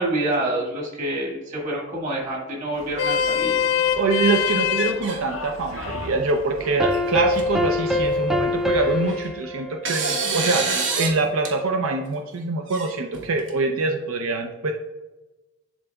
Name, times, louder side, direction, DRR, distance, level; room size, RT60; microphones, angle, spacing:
voice 1, 0.0-3.6, right 1 dB, 35° right, -3 dB, 1.7 m, -27 dB
Vehicle horn car horn honking, 2.7-9.1, left 8 dB, 75° left, 0.7 m, -27 dB
voice 2, 4.0-14.7, right 3 dB, 80° right, 3 dB, 0.5 m, -24 dB
sound 1, 4.5-5.2 5.6-6.1 6.9-7.0 7.3-7.4 8.8-9.3 9.8-11.1 11.4-11.5 12.7-13.5, right 4 dB, 60° right, 1.0 m, -27 dB
sound 2, 6.6-10.8, left 2 dB, ahead, 0.3 m, -25 dB
11.0 x 3.9 x 2.3 m, 1.1 s
head